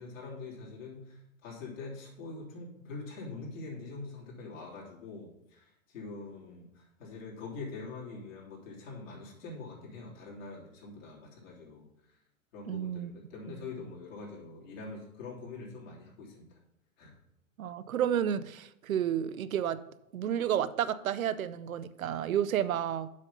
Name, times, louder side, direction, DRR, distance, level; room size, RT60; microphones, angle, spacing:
voice 1, 0.0-11.9 12.5-16.5 17.0-17.2, left 3 dB, 65° left, -4 dB, 3.6 m, -44 dB
voice 2, 12.7-13.1 13.5-13.6 17.6-19.8 20.1-23.1, right 9 dB, 80° right, 14 dB, 0.6 m, -31 dB
7.5 x 5.2 x 5.6 m, 0.81 s
hypercardioid pair, 115°, 41 cm